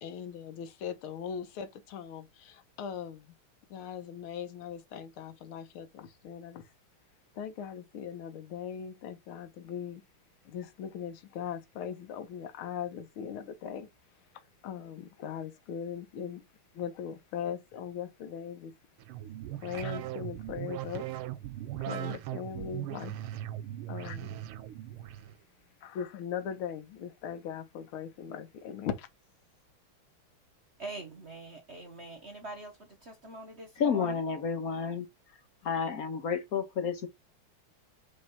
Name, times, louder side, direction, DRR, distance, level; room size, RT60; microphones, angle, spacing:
voice 1, 0.0-3.3 3.7-6.6 7.3-10.0 10.4-13.9 14.6-16.4 16.7-18.7 19.6-21.0 21.8-23.1 23.9-24.4 25.8-29.1, left 8 dB, 85° left, 1.7 m, -39 dB
sound 1, 19.0-25.3, right 13 dB, 90° right, 1.5 m, -39 dB
voice 2, 30.8-34.2, right 2 dB, 45° right, 1.0 m, -44 dB
voice 3, 33.8-35.1 35.6-37.1, left 6 dB, 55° left, 1.2 m, -30 dB
5.3 x 3.2 x 5.4 m
omnidirectional pair, 2.3 m